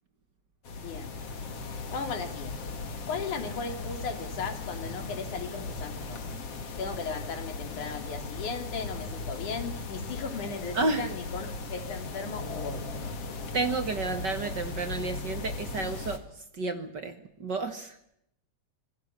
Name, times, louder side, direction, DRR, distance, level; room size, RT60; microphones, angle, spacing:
sound 1, 0.6-16.2, left 3 dB, 50° left, 3.3 m, -37 dB
voice 1, 0.8-1.2 1.9-2.5 3.1-6.2 6.8-13.1, left 5 dB, 75° left, 7 dB, 4.3 m, -37 dB
voice 2, 13.5-16.2 16.6-18.0, right 3 dB, 40° right, 9 dB, 1.8 m, -31 dB
26.0 x 20.0 x 6.8 m, 0.74 s
omnidirectional pair, 3.5 m